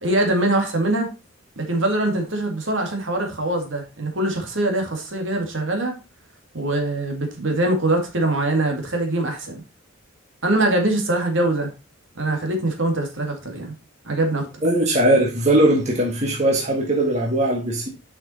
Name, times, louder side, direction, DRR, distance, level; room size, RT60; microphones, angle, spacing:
voice 1, 0.0-1.1 1.6-6.0 6.5-9.6 10.4-11.7 12.2-13.7 14.1-14.5, right 2 dB, 65° right, 2.1 m, -23 dB
voice 2, 14.6-17.9, right 1 dB, 35° right, 1.6 m, -19 dB
7.2 x 5.8 x 4.1 m
head